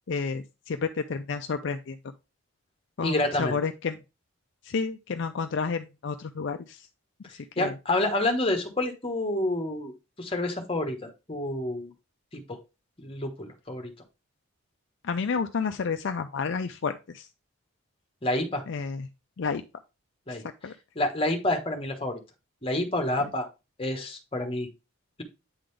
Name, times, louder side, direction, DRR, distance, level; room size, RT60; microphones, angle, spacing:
voice 1, 0.1-2.0 3.0-4.0 4.6-6.9 7.3-7.7 15.0-17.3 18.7-19.1 19.4-19.6 20.3-20.4 20.6-20.7, left 5 dB, 55° left, 8 dB, 0.4 m, -30 dB
voice 2, 3.0-3.6 7.6-9.9 10.2-11.9 12.3-12.6 13.0-13.9 18.2-18.6 20.3-20.4 20.9-22.2 22.6-23.5 23.8-24.7, left 1 dB, 25° left, 5 dB, 1.2 m, -28 dB
8.7 x 3.8 x 3.3 m, 0.27 s
head